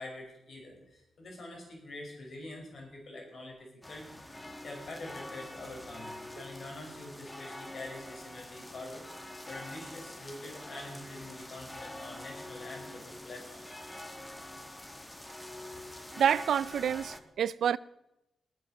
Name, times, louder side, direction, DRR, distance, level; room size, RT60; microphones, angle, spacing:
voice 1, 0.0-13.6, left 2 dB, 55° left, 6.0 m, -45 dB
sound 1, 3.8-17.2, left 1 dB, 10° left, 1.2 m, -45 dB
voice 2, 16.2-17.8, right 9 dB, 90° right, 0.4 m, -28 dB
19.5 x 8.6 x 6.7 m
wide cardioid pair, 135°, 0 cm